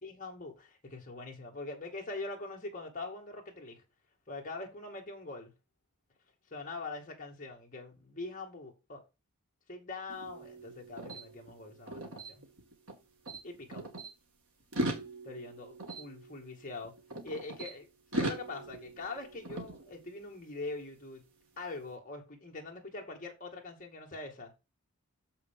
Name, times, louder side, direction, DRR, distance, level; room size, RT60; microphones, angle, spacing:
voice 1, 0.0-3.8 4.3-5.5 6.5-9.0 9.7-12.4 13.4-13.9 15.2-16.9 17.2-21.2 21.6-24.5, left 3 dB, 35° left, 2.2 m, -43 dB
sound 1, 10.1-13.0 13.3-14.1 14.6-17.7 18.1-20.4, right 1 dB, 75° right, 2.1 m, -40 dB
7.0 x 5.9 x 3.7 m
head